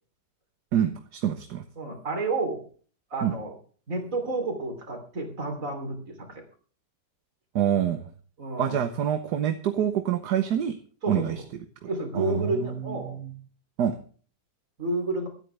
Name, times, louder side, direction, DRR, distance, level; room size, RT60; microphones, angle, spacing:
voice 1, 0.7-1.6 3.2-3.3 7.5-8.1 8.6-10.8 11.1-11.4 12.1-13.4 13.8-14.0, right 9 dB, 70° right, 8 dB, 1.5 m, -26 dB
voice 2, 1.8-2.6 3.1-3.5 3.9-6.4 8.4-8.8 11.0-11.4 11.9-13.2 14.8-15.3, right 2 dB, 50° right, 4 dB, 3.6 m, -30 dB
25.0 x 9.0 x 3.4 m, 0.42 s
omnidirectional pair, 1.9 m